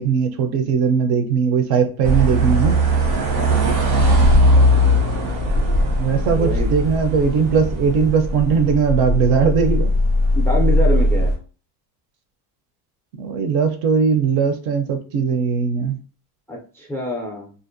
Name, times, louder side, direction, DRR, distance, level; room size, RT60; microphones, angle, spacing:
voice 1, 0.0-2.8 3.2-3.3 6.0-10.0 13.2-16.0, right 6 dB, 60° right, 6 dB, 0.6 m, -19 dB
sound 1, 2.0-11.4, equal, 85° right, 1.0 m, -18 dB
voice 2, 3.4-3.8 6.2-6.7 10.3-11.4 16.5-17.5, equal, 5° left, -1 dB, 0.3 m, -26 dB
2.5 x 2.1 x 2.5 m, 0.39 s
cardioid pair, 135°, 42 cm